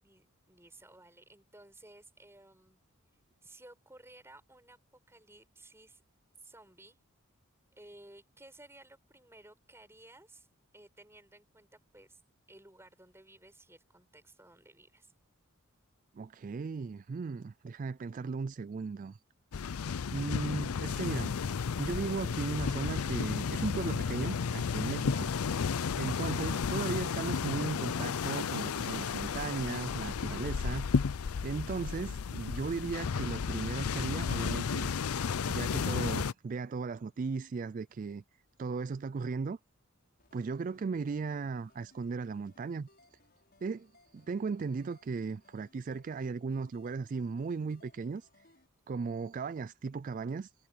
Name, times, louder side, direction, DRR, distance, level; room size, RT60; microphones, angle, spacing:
voice 1, 0.0-2.8 3.4-4.8 5.1-6.0 6.4-7.0 7.7-10.5 10.7-12.2 12.5-15.1, right 2 dB, 10° right, 7.5 m, -56 dB
voice 2, 16.1-19.2 20.1-21.4 21.8-25.3 26.0-30.9 31.4-34.9 35.5-38.2 38.6-39.6 40.3-43.2 43.6-48.4 48.9-50.7, right 4 dB, 40° right, 0.3 m, -36 dB
sound 1, 19.5-36.3, left 6 dB, 85° left, 0.5 m, -33 dB
sound 2, 40.2-48.7, left 2 dB, 45° left, 6.6 m, -65 dB
head